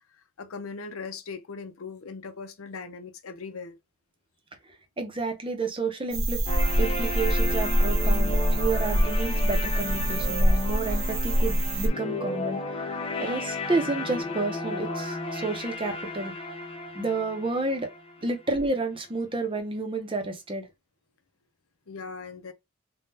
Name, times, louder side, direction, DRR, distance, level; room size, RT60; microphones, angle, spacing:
voice 1, 0.4-3.8 21.9-22.5, left 4 dB, 80° left, 0.6 m, -39 dB
voice 2, 5.0-6.4 6.8-12.9 13.2-16.3 16.9-17.9 18.2-20.7, right 3 dB, 25° right, 0.6 m, -30 dB
sound 1, 6.1-11.9, equal, 70° right, 0.7 m, -24 dB
sound 2, 6.5-18.5, left 2 dB, 25° left, 0.5 m, -34 dB
3.6 x 2.2 x 2.7 m
head